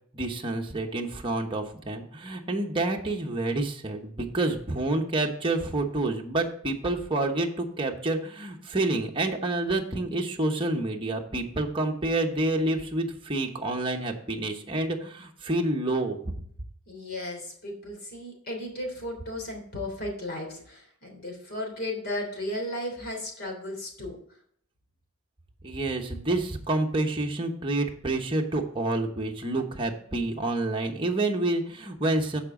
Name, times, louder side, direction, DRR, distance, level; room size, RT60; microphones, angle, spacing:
voice 1, 0.1-16.2 25.6-32.4, right 2 dB, 25° right, 1 dB, 1.1 m, -28 dB
voice 2, 16.9-24.2, left 1 dB, 45° left, 2 dB, 3.1 m, -35 dB
14.0 x 5.0 x 3.8 m, 0.62 s
head